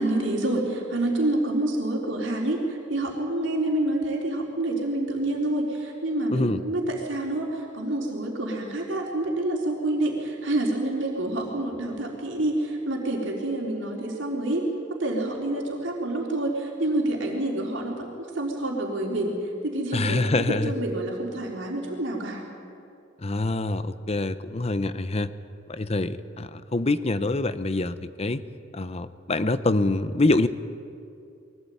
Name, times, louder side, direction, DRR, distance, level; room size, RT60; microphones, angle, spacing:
voice 1, 0.0-14.6 15.0-18.1 18.4-19.4 19.6-22.4, right 1 dB, 75° right, -1 dB, 4.1 m, -27 dB
voice 2, 19.9-20.7 23.2-25.3 25.7-28.4 28.7-30.5, left 2 dB, 35° left, 13 dB, 0.8 m, -25 dB
23.0 x 17.5 x 9.5 m, 2.6 s
head